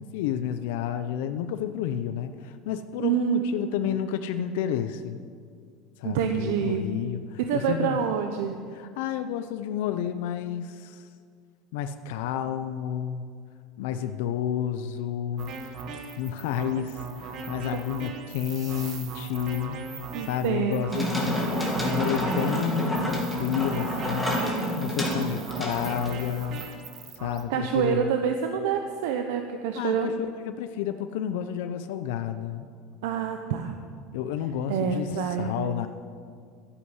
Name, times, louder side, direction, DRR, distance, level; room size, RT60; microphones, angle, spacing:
voice 1, 0.0-5.2 6.0-8.0 8.7-11.1 11.7-13.3 13.8-15.8 16.2-19.8 20.2-21.4 21.8-24.4 24.8-26.6 27.1-28.1 29.7-32.7 34.1-35.9, left 9 dB, 70° left, 9 dB, 0.7 m, -30 dB
voice 2, 3.0-3.9 6.0-6.9 7.4-8.6 20.1-21.1 24.3-24.9 27.5-30.1 33.0-33.8 34.7-35.7, right 7 dB, 80° right, 5 dB, 1.0 m, -27 dB
sound 1, 15.4-27.4, right 5 dB, 35° right, 1.4 m, -39 dB
sound 2, 20.9-26.6, equal, ahead, 2.3 m, -29 dB
12.5 x 11.0 x 8.2 m, 2.1 s
cardioid pair, 180°, 0 cm